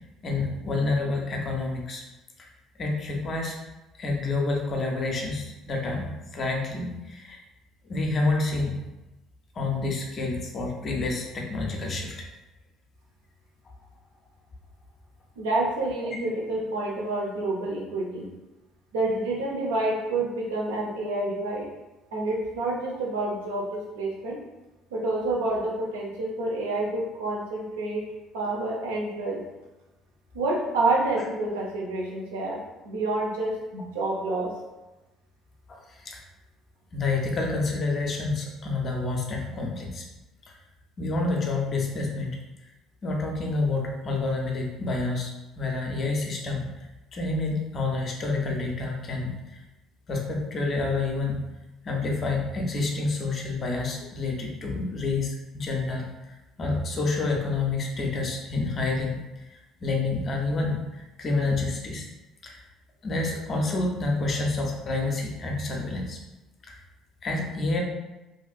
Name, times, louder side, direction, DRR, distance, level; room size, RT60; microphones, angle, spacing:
voice 1, 0.2-2.0 2.4-2.5 2.8-3.6 4.0-7.4 7.9-8.8 9.5-12.3 16.1-16.2 35.7-36.2 36.9-40.0 40.5-40.6 41.0-42.4 43.0-45.3 45.6-49.6 50.1-51.4 51.8-59.2 59.5-62.1 62.4-62.6 63.0-66.2 66.7-66.8 67.2-67.8, left 3 dB, 45° left, 0 dB, 0.6 m, -28 dB
voice 2, 15.4-18.3 18.9-21.7 22.1-24.4 24.9-28.0 28.3-29.4 30.3-34.5, right 2 dB, 75° right, -3 dB, 0.6 m, -28 dB
2.7 x 2.4 x 2.3 m, 1.0 s
figure-of-eight pair, 55°, 0 cm